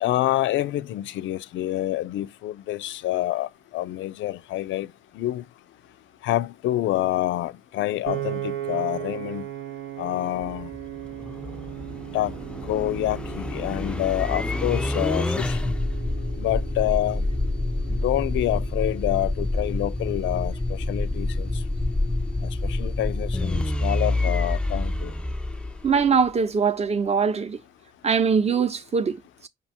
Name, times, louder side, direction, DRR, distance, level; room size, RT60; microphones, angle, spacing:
voice 1, 0.0-5.4 6.2-9.4 10.0-10.7 12.1-12.4 12.7-15.6 16.4-17.2 17.9-21.5 22.4-25.1, left 14 dB, 70° left, 0.4 m, -27 dB
Piano, 8.1-20.3, right 12 dB, 85° right, 0.7 m, -38 dB
sound 1, 10.3-26.3, left 2 dB, 5° left, 0.4 m, -27 dB
voice 2, 25.8-27.6 28.0-29.5, right 6 dB, 35° right, 0.7 m, -22 dB
5.2 x 2.2 x 4.1 m
cardioid pair, 90°, 20 cm